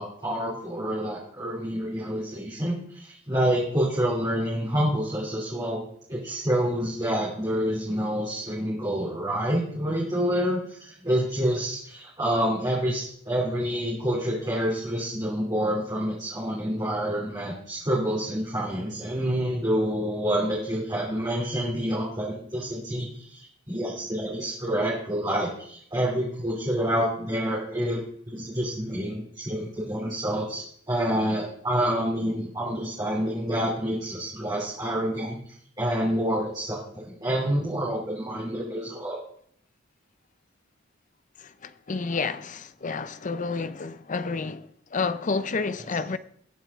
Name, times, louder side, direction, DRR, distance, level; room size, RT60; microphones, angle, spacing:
voice 1, 0.0-5.8 6.1-23.4 23.7-35.4 35.8-36.8 37.1-39.2, equal, 20° right, 2.9 m, -28 dB
voice 2, 41.4-46.2, left 4 dB, 40° left, 0.6 m, -30 dB
20.0 x 7.3 x 3.6 m
head